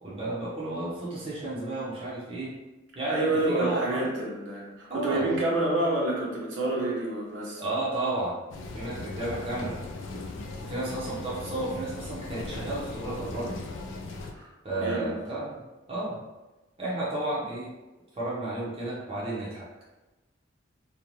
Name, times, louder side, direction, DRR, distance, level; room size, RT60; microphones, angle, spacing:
voice 1, 0.0-2.5 3.0-4.1 4.9-5.3 7.6-8.4 8.7-9.8 10.6-13.6 14.6-15.6 15.9-16.2 16.8-17.7 18.1-19.7, right 2 dB, 30° right, -7 dB, 0.6 m, -32 dB
voice 2, 3.1-7.7 14.3-15.1, right 2 dB, 75° right, -4 dB, 0.8 m, -28 dB
sound 1, 8.5-14.3, left 3 dB, 75° left, 0.4 m, -38 dB
2.5 x 2.1 x 2.9 m, 1.1 s
head